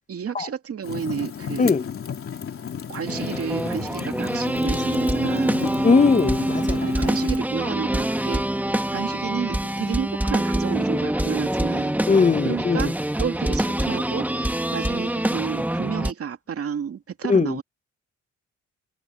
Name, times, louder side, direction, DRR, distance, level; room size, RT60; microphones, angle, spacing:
voice 1, 0.1-1.7 2.9-5.6 6.6-11.9 12.4-17.6, right 7 dB, 50° right, 2.4 m, -31 dB
Fire, 0.8-7.4, left 7 dB, 45° left, 2.8 m, -34 dB
sound 1, 3.1-16.1, right 1 dB, 5° right, 1.8 m, -25 dB
voice 2, 5.8-6.8 12.1-12.9 17.3-17.6, left 4 dB, 25° left, 1.0 m, -19 dB
cardioid pair, 90°, 30 cm